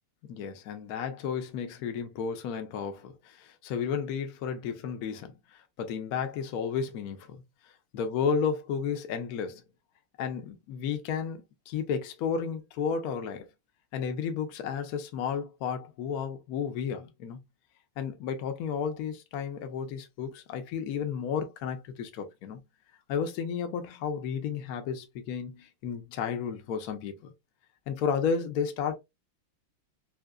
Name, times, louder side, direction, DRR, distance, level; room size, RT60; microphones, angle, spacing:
voice 1, 0.3-7.4 7.9-9.6 10.2-13.5 13.9-17.4 18.0-22.6 23.1-27.3 27.9-29.0, left 6 dB, 70° left, 0.9 m, -32 dB
3.9 x 2.8 x 2.3 m
omnidirectional pair, 2.4 m